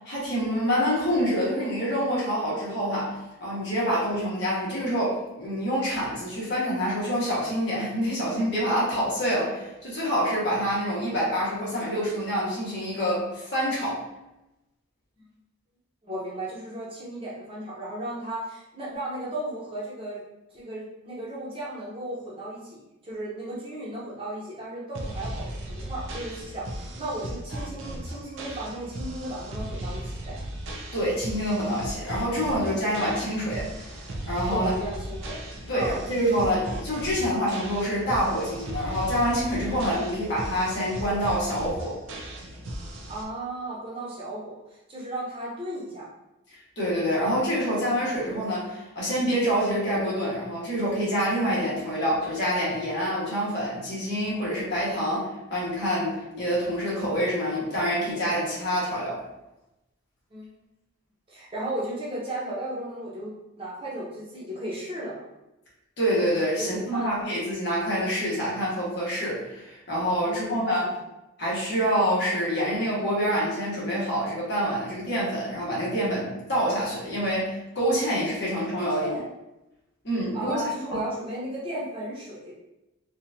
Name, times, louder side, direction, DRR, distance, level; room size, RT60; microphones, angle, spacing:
voice 1, 0.0-14.0 30.9-34.0 34.3-34.7 35.7-42.0 46.8-59.2 66.0-70.9 71.4-79.1 80.0-80.6 80.9-81.0, equal, 55° left, -7 dB, 1.5 m, -26 dB
voice 2, 16.0-20.2 20.5-30.4 34.5-35.4 35.7-35.9 43.1-46.1 60.3-60.5 61.3-63.3 63.6-65.2 66.6-67.2 70.2-70.9 78.5-78.7 79.0-79.2 80.3-82.5, right 1 dB, 25° right, -7 dB, 0.9 m, -35 dB
sound 1, 24.9-43.2, right 1 dB, 80° right, 0.6 m, -36 dB
4.3 x 2.5 x 2.7 m, 0.95 s
head